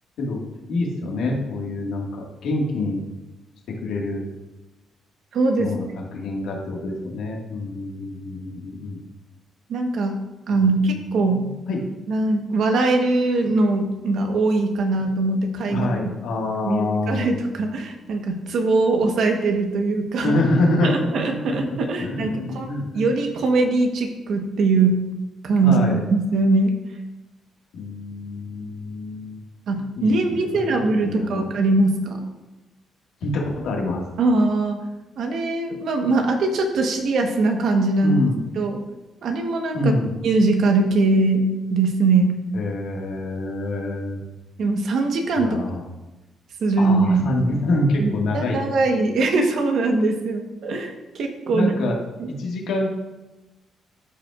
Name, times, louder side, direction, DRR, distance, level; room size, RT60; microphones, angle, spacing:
voice 1, 0.7-3.0 3.7-4.2 5.6-5.9 6.1-9.0 11.7-11.8 15.7-17.3 20.2-23.1 25.6-26.0 27.7-29.4 30.0-30.7 31.0-31.5 33.2-34.0 38.0-38.4 39.7-40.1 42.5-44.2 45.4-45.8 46.8-49.0 51.5-52.0 52.4-52.9, left 2 dB, 80° left, -1 dB, 1.8 m, -26 dB
voice 2, 5.3-5.7 9.7-10.2 10.5-11.4 12.1-15.9 16.6-20.3 20.8-25.0 25.4-26.7 29.7-32.2 34.2-34.8 35.2-38.2 38.6-38.8 39.2-39.9 40.2-42.4 44.6-45.6 46.6-47.2 48.0-51.7 52.2-52.3, right 3 dB, 70° right, 4 dB, 1.1 m, -21 dB
12.0 x 5.1 x 2.5 m, 1.0 s
cardioid pair, 90°, 0 cm